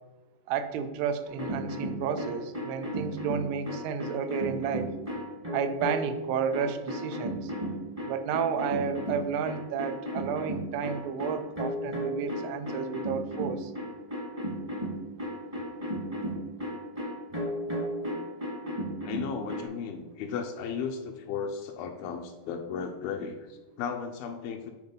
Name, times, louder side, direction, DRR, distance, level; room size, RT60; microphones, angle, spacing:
voice 1, 0.5-4.9 5.5-7.5 8.1-13.7, right 7 dB, 85° right, 9 dB, 2.7 m, -32 dB
sound 1, 1.3-6.2 6.5-19.6, equal, 25° right, 0.8 m, -34 dB
voice 2, 19.1-24.7, left 6 dB, 80° left, 4 dB, 2.3 m, -35 dB
8.0 x 4.7 x 5.4 m, 1.2 s
omnidirectional pair, 4.5 m